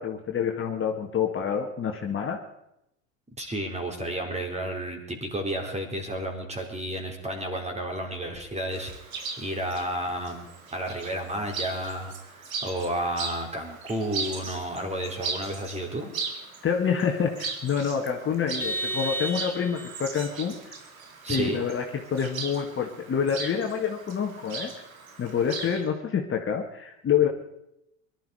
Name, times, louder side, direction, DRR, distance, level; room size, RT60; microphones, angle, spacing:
voice 1, 0.0-2.5 16.6-20.8 21.3-24.7 25.2-27.3, left 7 dB, 30° left, 2 dB, 2.1 m, -27 dB
voice 2, 3.4-8.9 9.4-16.1 21.2-21.6, right 1 dB, 15° right, 3 dB, 4.0 m, -32 dB
Chirp tweet, 8.7-25.8, right 4 dB, 85° right, 2.4 m, -38 dB
Vehicle horn car horn honking, 18.6-20.0, right 2 dB, 5° left, 1.2 m, -32 dB
22.5 x 12.5 x 5.0 m, 0.81 s
hypercardioid pair, 80°, 41 cm